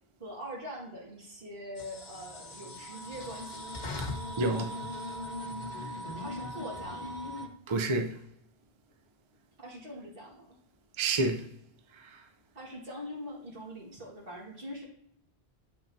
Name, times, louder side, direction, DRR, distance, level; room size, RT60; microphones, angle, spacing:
voice 1, 0.2-3.7 5.9-7.2 9.6-10.6 12.5-14.9, equal, 60° right, 1.8 m, -43 dB
sound 1, 1.8-7.5, left 1 dB, 45° left, 0.9 m, -39 dB
voice 2, 4.4-4.8 7.7-8.2 11.0-11.5, right 2 dB, 40° right, 0.4 m, -28 dB
8.6 x 5.6 x 2.6 m
omnidirectional pair, 1.1 m